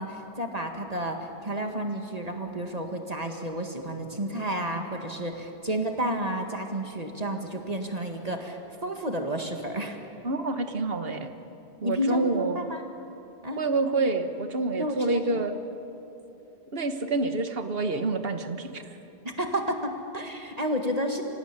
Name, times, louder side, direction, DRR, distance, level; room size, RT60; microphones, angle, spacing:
voice 1, 0.0-10.0 11.8-12.8 13.4-13.6 14.8-15.2 19.4-21.2, equal, 35° right, 4 dB, 1.9 m, -31 dB
voice 2, 10.2-11.3 11.8-12.7 13.6-15.5 16.7-19.0, right 3 dB, 60° right, 8 dB, 1.6 m, -27 dB
25.0 x 17.0 x 9.9 m, 2.9 s
omnidirectional pair, 1.1 m